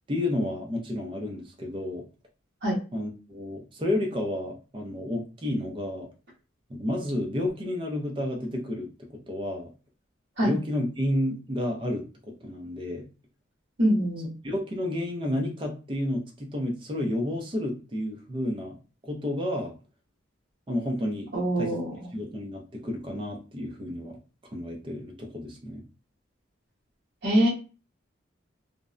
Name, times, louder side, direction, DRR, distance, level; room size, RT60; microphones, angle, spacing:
voice 1, 0.1-2.0 2.9-6.1 6.7-9.7 10.4-13.0 14.4-18.8 19.0-19.7 20.7-21.3 21.6-21.8 22.1-24.2 24.5-25.8, left 1 dB, 25° right, 1 dB, 0.5 m, -31 dB
voice 2, 13.8-14.3 21.3-21.9 27.2-27.5, equal, 55° right, -6 dB, 0.8 m, -24 dB
2.6 x 2.0 x 2.4 m, 0.34 s
head